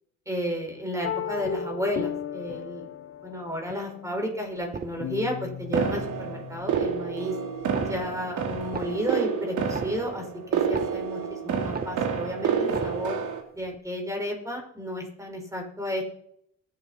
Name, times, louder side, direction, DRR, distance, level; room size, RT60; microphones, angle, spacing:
voice 1, 0.2-2.9 3.2-7.3 7.8-10.2 10.5-13.2 13.5-16.0, equal, 10° right, 1 dB, 5.0 m, -32 dB
sound 1, 1.0-7.7, left 8 dB, 45° left, 1.0 m, -36 dB
sound 2, 4.6-5.3 5.6-6.3 6.6-7.3 7.6-8.3 8.6-11.3 11.6-12.3 12.6-13.3 13.6-13.8, right 5 dB, 30° right, 1.1 m, -38 dB
sound 3, 5.7-13.4, right 6 dB, 75° right, 2.4 m, -29 dB
22.5 x 9.1 x 4.2 m, 0.72 s
cardioid pair, 90°, 30 cm